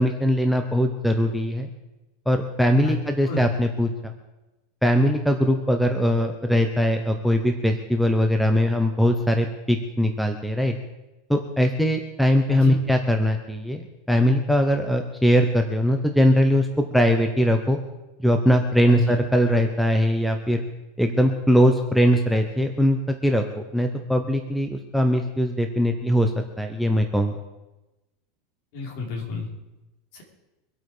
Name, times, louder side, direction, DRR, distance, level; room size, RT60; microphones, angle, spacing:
voice 1, 0.0-1.7 2.3-3.9 4.8-10.7 11.3-17.8 18.2-20.6 21.0-23.4 23.7-26.3 26.6-27.4, equal, ahead, 4 dB, 0.9 m, -21 dB
voice 2, 28.7-29.5 30.1-30.2, left 4 dB, 50° left, -1 dB, 4.6 m, -30 dB
24.5 x 8.4 x 5.0 m, 1.0 s
supercardioid pair, 160°, 0 cm